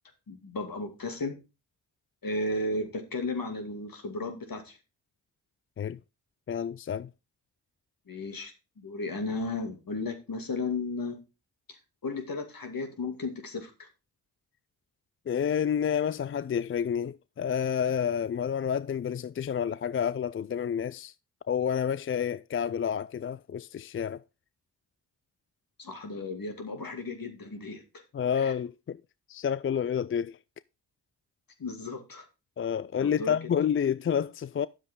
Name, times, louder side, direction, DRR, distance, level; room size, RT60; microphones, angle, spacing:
voice 1, 0.3-1.4 2.2-4.8 8.1-11.2 11.7-13.9 25.8-27.8 28.4-28.5 31.6-32.3 33.0-33.4, left 2 dB, 60° left, 2.5 m, -34 dB
voice 2, 6.5-7.1 15.3-21.1 21.5-24.2 28.1-29.0 29.3-30.4 32.6-34.7, left 8 dB, 35° left, 0.4 m, -29 dB
10.0 x 7.3 x 3.8 m
supercardioid pair, 40°, 40 cm